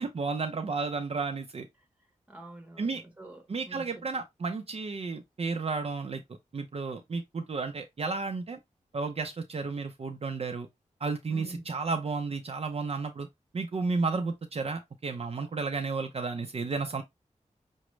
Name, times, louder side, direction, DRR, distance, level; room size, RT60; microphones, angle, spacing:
voice 1, 0.0-1.7 2.8-3.0 3.5-6.2 6.5-8.6 8.9-10.7 11.0-13.3 13.5-17.0, right 4 dB, 50° right, 0.5 m, -32 dB
voice 2, 2.3-4.0 11.3-11.7, right 2 dB, 10° right, 1.0 m, -46 dB
6.0 x 2.1 x 3.1 m
wide cardioid pair, 130°, 13 cm